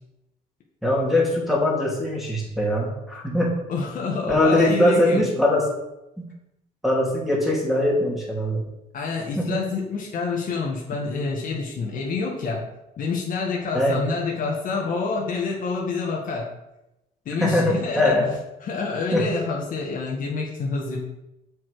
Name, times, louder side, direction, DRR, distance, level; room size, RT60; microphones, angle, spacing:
voice 1, 0.8-3.5 4.3-5.7 6.8-8.6 9.3-9.6 13.7-14.0 17.4-18.3 19.1-19.3, left 1 dB, ahead, -3 dB, 2.6 m, -21 dB
voice 2, 3.7-5.3 8.9-12.7 13.0-16.5 17.2-18.2 18.6-21.0, left 4 dB, 55° left, -2 dB, 1.6 m, -27 dB
7.0 x 4.8 x 4.9 m, 0.90 s
cardioid pair, 110°, 17 cm